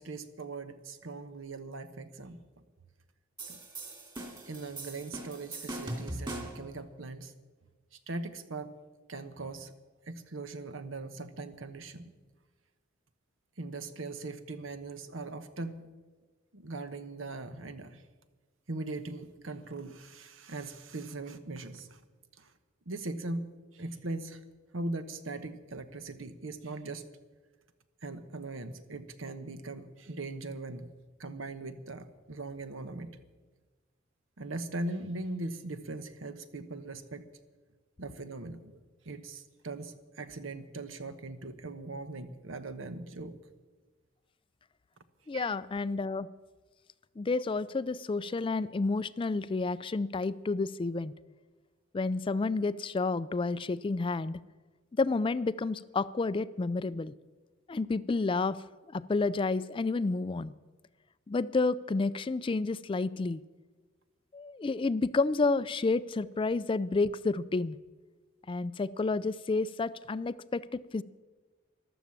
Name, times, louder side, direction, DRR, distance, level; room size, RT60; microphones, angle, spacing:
voice 1, 0.0-2.4 3.5-3.6 4.5-7.3 8.1-8.7 9.1-9.7 10.1-12.1 13.6-15.8 16.5-18.0 18.7-22.0 22.4-22.5 22.9-23.5 23.7-24.4 24.7-27.0 28.0-30.9 31.2-33.2 34.4-37.2 38.0-38.8 39.0-43.3 45.3-45.5, right 2 dB, 80° right, 10 dB, 1.1 m, -40 dB
sound 1, 3.4-6.7, right 1 dB, 25° right, 2.7 m, -40 dB
voice 2, 45.3-46.3 47.2-51.1 51.9-54.4 54.9-57.1 57.7-58.6 58.9-60.5 61.3-63.4 64.3-67.8 68.5-71.0, left 3 dB, 25° left, 16 dB, 0.4 m, -30 dB
14.0 x 12.0 x 7.3 m, 1.3 s
head